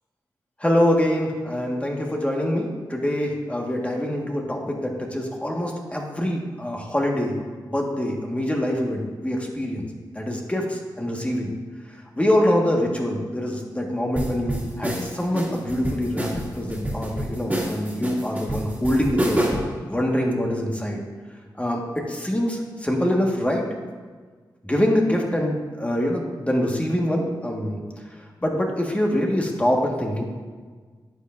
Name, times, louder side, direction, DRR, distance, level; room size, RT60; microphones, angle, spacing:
voice 1, 0.6-7.4 7.7-9.9 10.1-11.5 12.1-16.3 16.5-19.4 19.9-21.0 21.6-23.6 24.6-27.8 28.4-30.2, left 1 dB, 15° left, 0 dB, 1.5 m, -24 dB
sound 1, 14.2-19.8, right 1 dB, 20° right, 2.4 m, -27 dB
11.5 x 8.3 x 2.6 m, 1.5 s
cardioid pair, 60°, 8 cm